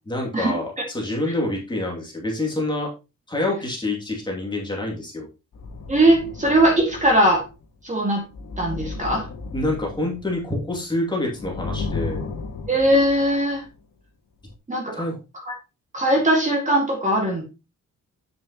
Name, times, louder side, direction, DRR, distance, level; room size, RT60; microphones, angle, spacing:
voice 1, 0.1-2.9 3.3-5.3 9.5-12.2 14.9-15.2, left 1 dB, 15° left, -2 dB, 2.5 m, -27 dB
sound 1, 5.5-7.7 8.2-10.9 11.2-13.7 14.5-14.6, left 4 dB, 60° left, 1.6 m, -34 dB
voice 2, 5.9-7.4 7.8-8.2 8.6-9.3 12.7-13.6 14.7-14.9 15.3-15.5 15.9-17.4, right 1 dB, 25° right, 1 dB, 2.1 m, -20 dB
8.1 x 7.4 x 3.0 m, 0.28 s
wide cardioid pair, 150°, 31 cm